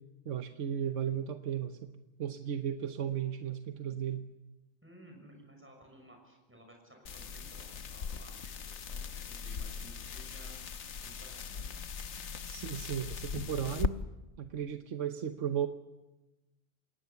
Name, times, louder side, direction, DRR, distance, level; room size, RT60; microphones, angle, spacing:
voice 1, 0.2-1.9 2.2-4.2 12.5-14.0 14.4-15.7, right 9 dB, 80° right, 7 dB, 1.3 m, -35 dB
voice 2, 4.8-11.7, equal, 10° right, 1 dB, 5.9 m, -56 dB
sound 1, 7.1-13.9, left 6 dB, 70° left, 1.3 m, -39 dB
28.5 x 19.0 x 7.1 m, 1.1 s
omnidirectional pair, 1.3 m